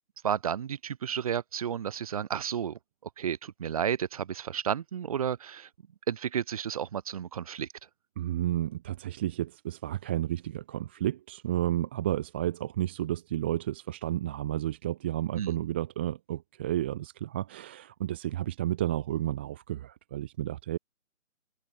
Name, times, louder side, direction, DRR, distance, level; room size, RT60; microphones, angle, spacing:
voice 1, 0.2-5.7 6.1-7.7 15.3-15.6, right 8 dB, 25° right, 3.3 m, -32 dB
voice 2, 8.2-20.8, right 13 dB, 10° right, 1.2 m, -31 dB
hypercardioid pair, 170°, 40 cm